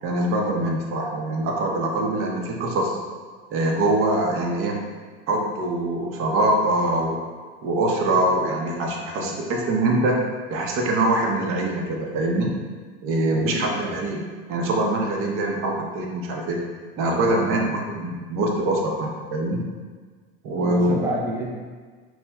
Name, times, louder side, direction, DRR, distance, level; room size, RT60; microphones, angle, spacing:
voice 1, 0.0-3.0 3.5-4.8 5.3-7.2 7.6-10.2 10.5-12.5 13.0-14.2 14.5-16.6 17.0-19.6 20.4-21.0, right 1 dB, 45° right, 0 dB, 0.7 m, -23 dB
voice 2, 9.0-9.3 13.3-14.0 17.0-17.7 20.6-21.5, right 1 dB, 10° right, -4 dB, 0.5 m, -30 dB
5.6 x 2.1 x 2.2 m, 1.5 s
supercardioid pair, 135°, 29 cm